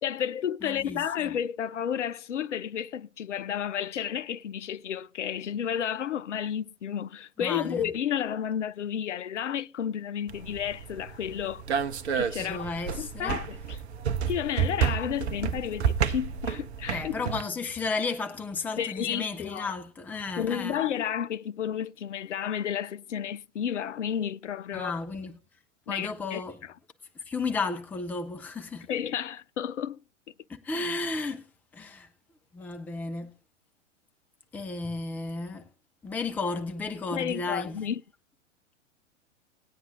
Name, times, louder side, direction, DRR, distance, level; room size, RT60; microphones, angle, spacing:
voice 1, 0.0-11.6 12.1-12.7 13.0-13.8 14.3-17.2 18.8-19.7 20.4-25.0 25.9-26.4 28.9-30.0 37.1-38.0, left 9 dB, 70° left, 0.5 m, -32 dB
voice 2, 0.6-1.4 7.4-7.9 12.4-13.4 16.9-20.8 24.7-25.4 25.9-26.6 27.1-28.9 30.5-31.5 31.7-32.1 32.5-33.4 34.5-35.7 36.0-37.9, left 3 dB, 5° left, 0.5 m, -33 dB
sound 1, 10.3-17.4, right 7 dB, 60° right, 0.7 m, -30 dB
19.0 x 9.3 x 2.5 m
figure-of-eight pair, 100°, 38 cm